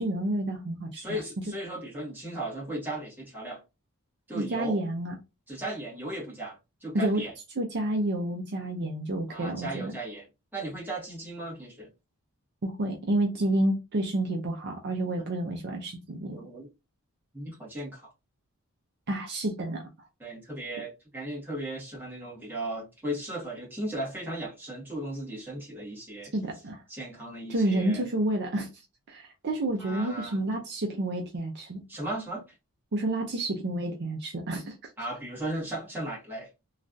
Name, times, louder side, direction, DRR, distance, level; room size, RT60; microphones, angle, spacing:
voice 1, 0.0-1.2 4.3-5.2 6.9-7.2 7.6-9.9 12.6-16.4 19.1-19.9 26.3-26.8 27.5-28.8 29.1-31.8 32.9-34.8, right 1 dB, 50° right, 0.5 m, -29 dB
voice 2, 0.9-3.6 4.3-4.8 5.5-7.3 9.3-10.2 10.5-11.9 16.2-16.7 17.3-18.1 20.2-26.3 26.9-28.0 29.8-30.4 31.9-32.4 35.0-36.5, right 1 dB, 10° right, 1.4 m, -36 dB
3.2 x 2.3 x 2.5 m
head